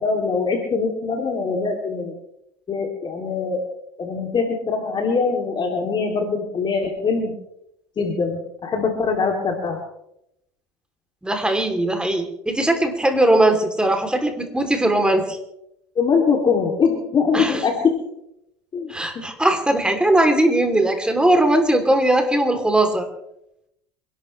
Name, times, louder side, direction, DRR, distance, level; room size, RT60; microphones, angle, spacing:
voice 1, 0.0-2.1 2.7-3.6 4.0-7.3 8.0-9.8 15.9-17.9 18.7-19.2, left 5 dB, 35° left, 2 dB, 2.8 m, -22 dB
voice 2, 11.2-15.4 17.3-17.6 18.9-23.1, right 1 dB, 5° right, 5 dB, 3.2 m, -19 dB
28.5 x 12.0 x 3.3 m, 0.81 s
hypercardioid pair, 85°, 14 cm